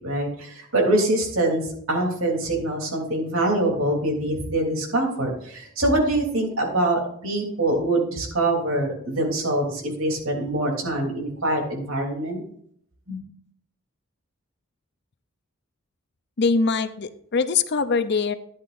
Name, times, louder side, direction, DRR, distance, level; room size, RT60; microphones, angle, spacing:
voice 1, 0.0-12.4 13.1-13.2, right 1 dB, 70° right, 1 dB, 3.2 m, -24 dB
voice 2, 16.4-18.3, left 4 dB, 50° left, 12 dB, 0.6 m, -22 dB
13.0 x 10.5 x 2.6 m, 0.66 s
head